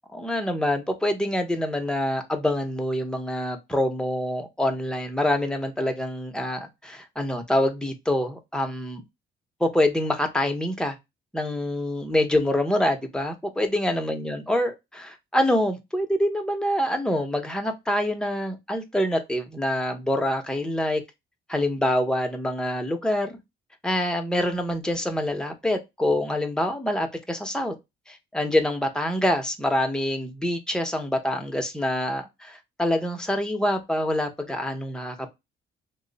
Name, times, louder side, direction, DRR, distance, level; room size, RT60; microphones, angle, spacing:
voice 1, 0.1-9.0 9.6-11.0 11.3-21.0 21.5-23.4 23.8-27.7 28.1-35.3, left 1 dB, 5° left, 0.7 m, -26 dB
3.0 x 2.1 x 3.8 m
cardioid pair, 90°, 20 cm